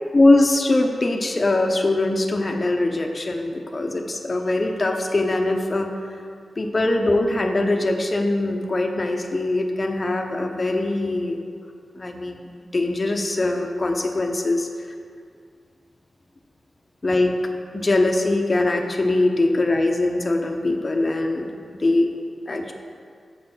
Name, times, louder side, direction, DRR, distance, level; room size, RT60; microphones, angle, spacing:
voice 1, 0.1-5.9 6.6-11.4 11.9-14.7 17.0-17.4 17.7-21.5 21.7-22.1 22.5-22.7, left 2 dB, 35° left, 3 dB, 0.7 m, -22 dB
6.8 x 6.6 x 5.6 m, 2.2 s
wide cardioid pair, 85°, 0 cm